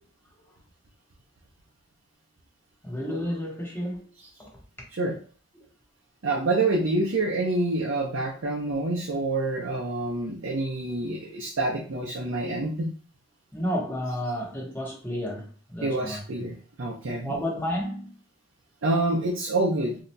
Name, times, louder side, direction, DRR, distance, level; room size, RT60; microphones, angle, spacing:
voice 1, 2.8-4.1 4.4-4.5 5.5-5.6 13.5-16.2 17.2-18.1, equal, 10° left, 1.0 m, -31 dB
voice 2, 6.2-12.9 15.8-17.3 18.8-20.0, right 2 dB, 70° right, 0.6 m, -27 dB
3.9 x 2.8 x 2.2 m
head